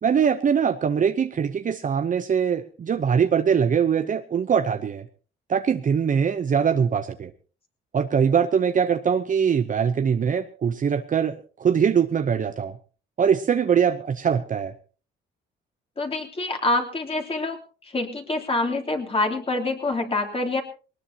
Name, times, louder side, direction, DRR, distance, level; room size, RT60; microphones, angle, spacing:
voice 1, 0.0-5.1 5.5-7.3 7.9-12.8 13.2-14.7, right 7 dB, 40° right, 8 dB, 0.9 m, -22 dB
voice 2, 16.0-17.6 17.9-20.6, left 2 dB, 30° left, 3 dB, 3.2 m, -26 dB
20.0 x 19.0 x 2.9 m, 0.37 s
cardioid pair, 90°, 20 cm